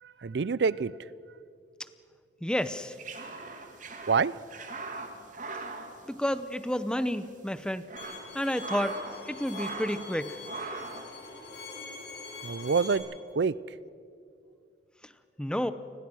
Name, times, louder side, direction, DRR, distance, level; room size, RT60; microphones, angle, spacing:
voice 1, 0.0-0.9 4.1-4.3 12.4-13.0 13.3-13.6, right 5 dB, 65° right, 19 dB, 0.5 m, -26 dB
voice 2, 2.4-2.9 6.1-7.8 8.3-9.0 9.3-10.4 15.4-15.7, equal, 5° left, 13 dB, 0.8 m, -30 dB
sound 1, 2.7-6.8 7.0-7.1 7.6-9.2 9.5-10.1 10.4-11.1, right 3 dB, 45° right, 2.4 m, -40 dB
Bowed string instrument, 8.0-13.0, left 4 dB, 70° left, 7.0 m, -44 dB
30.0 x 21.0 x 6.3 m, 2.4 s
head